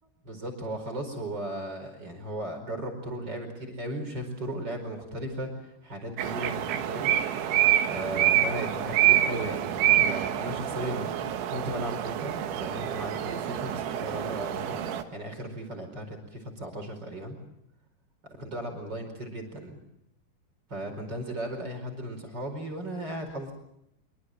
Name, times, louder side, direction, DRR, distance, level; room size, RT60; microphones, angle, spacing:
voice 1, 0.0-7.1 7.8-14.8 15.1-17.4 18.4-19.8 20.7-23.5, right 1 dB, 25° right, 4 dB, 5.0 m, -36 dB
sound 1, 6.2-15.0, right 11 dB, 80° right, 3.9 m, -27 dB
25.5 x 24.5 x 7.8 m, 0.79 s
omnidirectional pair, 5.3 m